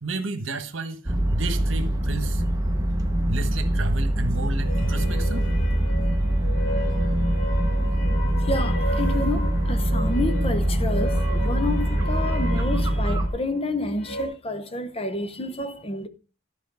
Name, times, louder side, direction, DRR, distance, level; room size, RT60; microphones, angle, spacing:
voice 1, 0.0-2.4 3.3-5.5, right 3 dB, 75° right, 1.3 m, -32 dB
sound 1, 1.1-13.3, right 1 dB, 20° right, 1.1 m, -23 dB
sound 2, 4.5-14.3, equal, 65° left, 2.9 m, -33 dB
voice 2, 8.4-16.1, left 2 dB, 30° left, 0.8 m, -29 dB
13.0 x 5.1 x 5.2 m
head